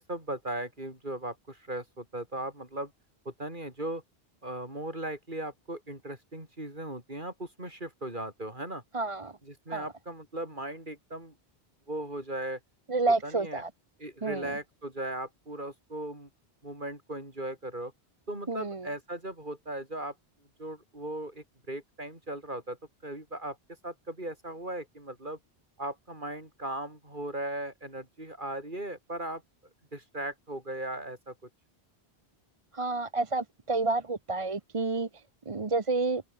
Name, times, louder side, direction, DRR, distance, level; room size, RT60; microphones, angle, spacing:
voice 1, 0.0-2.9 3.2-4.0 4.4-8.8 9.4-11.3 11.9-12.6 13.2-13.6 14.0-16.3 16.6-17.9 18.3-20.1 20.6-22.8 23.0-23.6 23.8-25.4 25.8-29.4 29.9-31.3, right 1 dB, 50° right, 6.2 m, -37 dB
voice 2, 8.9-9.3 9.7-9.8 12.9-13.7 14.2-14.6 18.5-18.9 32.7-35.1 35.5-36.2, right 3 dB, 35° right, 1.0 m, -29 dB
omnidirectional pair, 1.1 m